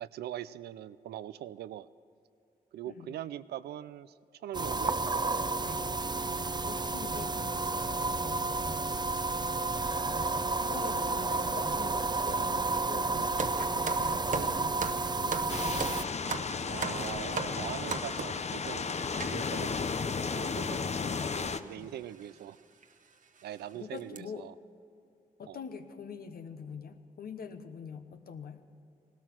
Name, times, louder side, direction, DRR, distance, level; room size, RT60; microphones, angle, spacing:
voice 1, 0.0-1.9 2.7-5.3 5.7-6.0 11.3-11.4 16.7-20.0 20.3-22.6 23.4-24.5 25.5-25.6, right 12 dB, 85° right, 16 dB, 0.4 m, -42 dB
sound 1, 4.5-16.0, right 3 dB, 25° right, 0.6 m, -31 dB
voice 2, 6.7-8.6 10.7-15.9 20.8-21.9 23.7-24.5 25.4-28.6, left 6 dB, 70° left, 8 dB, 1.1 m, -45 dB
sound 2, 13.4-18.4 19.2-19.4 20.1-20.2 20.4-20.6 21.5-21.7 22.2-22.3 22.8-22.9 23.4-23.6 24.0-24.2, right 5 dB, 55° right, 1.0 m, -37 dB
sound 3, 15.5-21.6, left 5 dB, 45° left, 0.7 m, -34 dB
18.0 x 13.0 x 6.1 m, 2.7 s
supercardioid pair, 45°, 16 cm